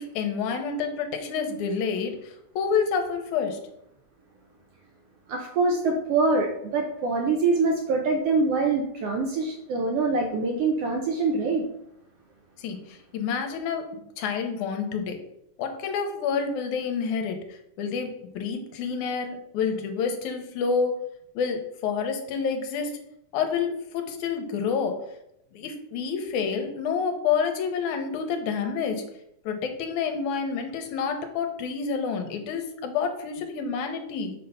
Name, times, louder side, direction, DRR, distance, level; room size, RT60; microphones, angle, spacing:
voice 1, 0.0-3.6 12.6-15.2 15.6-21.0 21.4-23.0 23.3-25.0 25.5-29.0 29.5-34.3, left 6 dB, 85° left, 5 dB, 2.3 m, -28 dB
voice 2, 5.3-11.7, right 3 dB, 75° right, 2 dB, 1.4 m, -24 dB
6.3 x 3.3 x 5.5 m, 0.78 s
omnidirectional pair, 3.4 m